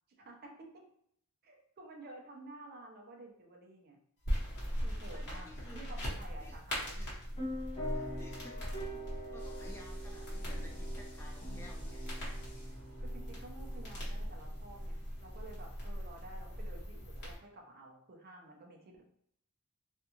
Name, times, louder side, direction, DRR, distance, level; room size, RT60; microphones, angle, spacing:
voice 1, 0.2-0.8 1.4-4.0 4.8-7.1 13.0-19.1, right 2 dB, 45° right, 1 dB, 0.5 m, -52 dB
sound 1, 4.2-17.4, equal, 50° left, 1.1 m, -40 dB
voice 2, 5.1-5.9 6.4-6.6 7.0-7.2 7.9-12.0, left 1 dB, 10° left, -1 dB, 0.3 m, -55 dB
sound 2, 7.4-15.5, equal, 30° left, 0.8 m, -45 dB
sound 3, 9.4-13.2, left 2 dB, 85° left, 1.0 m, -60 dB
2.5 x 2.3 x 2.9 m, 0.68 s
head